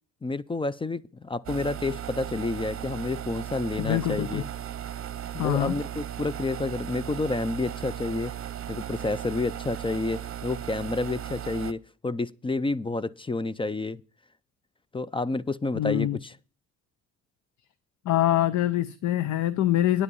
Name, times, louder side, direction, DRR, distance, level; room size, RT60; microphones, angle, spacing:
voice 1, 0.2-4.5 5.3-8.3 8.7-14.0 14.9-16.3, left 3 dB, 15° left, 0.4 m, -29 dB
sound 1, 1.5-11.7, right 10 dB, 45° right, 0.8 m, -36 dB
voice 2, 3.8-4.4 5.4-5.7 15.7-16.2 18.0-20.0, left 12 dB, 70° left, 0.7 m, -24 dB
9.8 x 8.3 x 5.4 m
cardioid pair, 90°, 30 cm